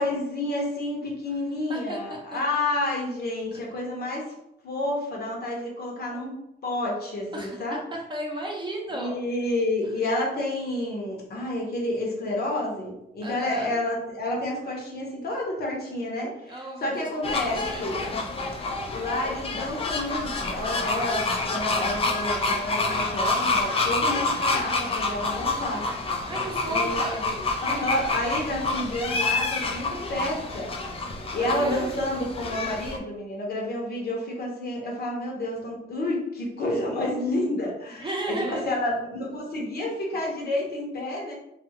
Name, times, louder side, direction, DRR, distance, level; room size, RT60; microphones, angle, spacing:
voice 1, 0.0-4.3 4.6-6.4 6.6-7.8 8.9-18.0 18.9-25.9 26.1-26.3 26.7-27.3 27.6-30.7 31.1-41.4, left 1 dB, 50° left, -2 dB, 0.9 m, -30 dB
voice 2, 7.3-9.1 13.2-13.8 16.5-18.3 26.2-27.3 31.4-31.9 37.9-38.8, right 1 dB, 25° right, -1 dB, 0.7 m, -34 dB
sound 1, 17.2-33.0, left 3 dB, 30° left, 0.4 m, -28 dB
2.4 x 2.3 x 2.8 m, 0.82 s
cardioid pair, 90°, 20 cm